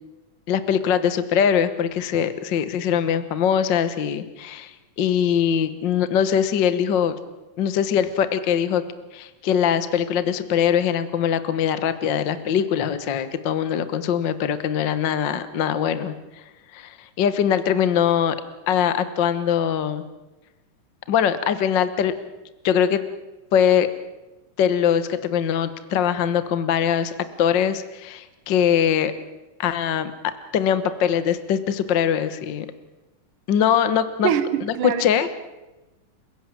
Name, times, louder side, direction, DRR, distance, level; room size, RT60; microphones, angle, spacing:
voice 1, 0.5-7.1 7.6-8.8 9.1-16.1 16.7-18.4 18.7-20.0 21.1-22.1 22.6-23.0 23.5-23.9 24.6-27.1 27.4-29.1 29.6-32.7 33.5-34.3 34.6-35.3, left 8 dB, 55° left, 1.2 m, -22 dB
voice 2, 34.2-35.3, right 8 dB, 85° right, 2.9 m, -24 dB
29.5 x 16.5 x 7.5 m
omnidirectional pair, 3.6 m